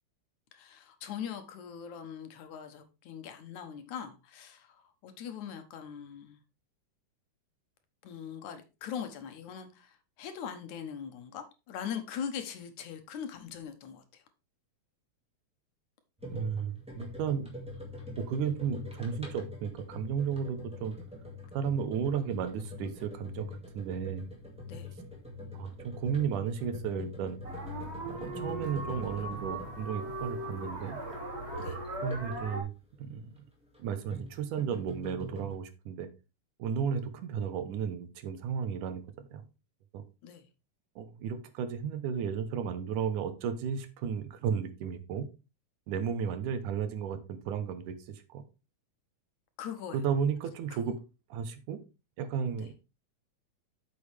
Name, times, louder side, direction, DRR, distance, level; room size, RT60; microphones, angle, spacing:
voice 1, 0.5-6.4 8.0-14.2 24.7-24.9 31.6-31.8 40.2-40.5 49.6-50.0 50.7-50.8 52.6-52.7, left 8 dB, 75° left, 2.5 m, -41 dB
sound 1, 16.2-32.6 33.6-35.5, left 2 dB, 5° right, 1.6 m, -44 dB
voice 2, 16.3-17.5 18.2-21.0 21.5-24.3 25.5-27.4 28.0-31.0 32.0-32.7 33.0-33.3 33.8-36.1 36.6-39.4 39.9-40.0 41.0-45.3 45.9-48.4 49.9-51.0 51.3-51.8 52.2-52.9, right 7 dB, 80° right, 2.5 m, -34 dB
sound 2, 27.4-32.6, right 1 dB, 30° right, 1.5 m, -39 dB
8.6 x 6.9 x 3.5 m
omnidirectional pair, 3.5 m